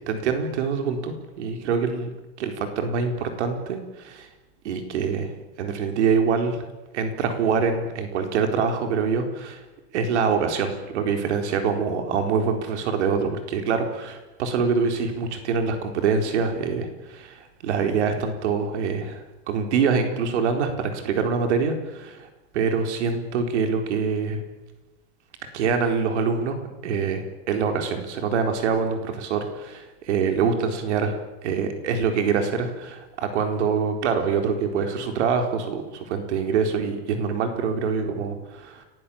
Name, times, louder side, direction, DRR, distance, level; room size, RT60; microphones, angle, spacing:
voice 1, 0.1-2.1 2.4-4.3 4.6-5.3 5.6-6.6 6.9-9.6 9.9-22.3 22.5-24.4 25.5-26.6 26.8-31.2 31.4-38.8, right 5 dB, 90° right, 6 dB, 4.3 m, -25 dB
29.5 x 19.0 x 8.7 m, 1.1 s
supercardioid pair, 165°, 33 cm